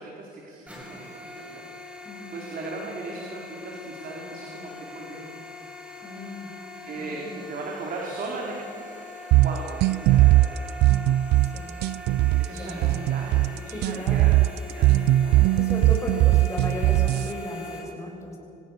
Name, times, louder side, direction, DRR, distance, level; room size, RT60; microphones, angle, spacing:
voice 1, 0.0-2.0 2.3-5.3 6.1-6.2 6.8-8.9 9.4-10.6 12.2-14.4 14.7-15.6, right 3 dB, 55° right, -2 dB, 4.6 m, -38 dB
sound 1, 0.7-17.8, left 2 dB, 5° right, 7.0 m, -42 dB
voice 2, 2.0-2.4 6.0-6.5 7.0-7.4 11.5-11.7 12.5-13.1 13.7-14.3 15.6-18.4, left 1 dB, 15° left, 0 dB, 7.3 m, -36 dB
sound 2, 9.3-17.3, right 16 dB, 80° right, 0.4 m, -20 dB
26.5 x 18.5 x 6.9 m, 2.9 s
cardioid pair, 110°, 17 cm